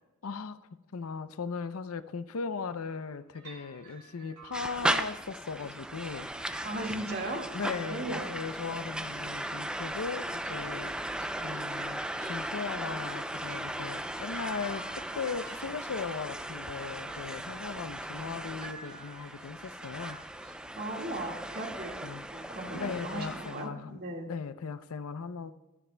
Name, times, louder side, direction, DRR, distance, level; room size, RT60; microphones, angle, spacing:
voice 1, 0.2-0.6 0.9-6.6 7.5-10.9 11.4-20.2 22.0-22.2 22.7-24.0 24.3-25.5, left 5 dB, 75° left, 13 dB, 0.5 m, -38 dB
sound 1, 2.9-3.1 3.3-20.5, right 4 dB, 85° right, 3.7 m, -53 dB
sound 2, 4.5-23.7, right 1 dB, 5° right, 0.3 m, -37 dB
voice 2, 6.6-8.3 20.8-24.3, right 1 dB, 45° right, 1 dB, 1.8 m, -37 dB
17.0 x 12.5 x 2.2 m, 1.1 s
head